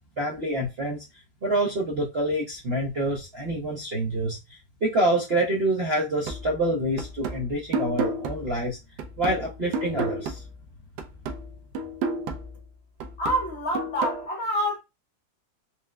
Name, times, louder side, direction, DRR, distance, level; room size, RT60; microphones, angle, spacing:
voice 1, 0.2-1.0 1.4-8.8 9.2-10.4, right 1 dB, 55° right, 0.6 m, -27 dB
sound 1, 6.3-10.7 11.0-14.3, right 3 dB, 75° right, 1.1 m, -32 dB
voice 2, 13.2-14.8, equal, 65° left, 0.6 m, -27 dB
4.4 x 2.1 x 2.3 m
omnidirectional pair, 1.9 m